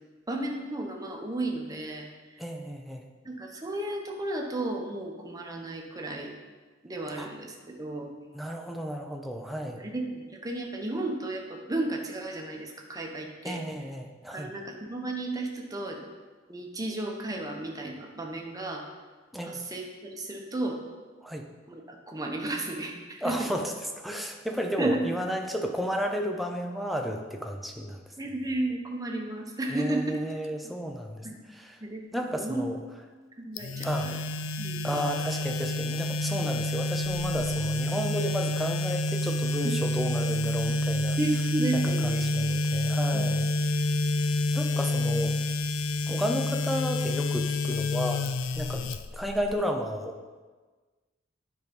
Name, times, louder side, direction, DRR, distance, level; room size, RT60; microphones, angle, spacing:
voice 1, 0.3-2.1 3.2-6.3 6.8-8.1 9.7-13.6 14.3-16.0 16.5-18.8 19.4-20.8 21.7-23.5 24.8-25.0 28.2-30.2 31.2-31.4 31.8-32.0 32.3-32.7 33.4-34.1 34.6-35.1 39.6-39.8 41.2-42.2 43.1-43.3, right 2 dB, 20° right, 1 dB, 1.0 m, -33 dB
voice 2, 2.4-3.0 7.2-7.3 8.3-9.8 13.4-14.5 19.3-19.6 21.2-21.4 23.2-23.7 24.0-28.0 29.7-31.8 32.1-32.8 33.8-34.2 34.8-41.2 41.8-43.9 44.2-45.3 46.1-48.9 49.1-50.2, equal, ahead, 2 dB, 0.6 m, -33 dB
sound 1, 33.6-49.5, left 2 dB, 75° left, 0.4 m, -28 dB
9.5 x 4.7 x 5.3 m, 1.4 s
head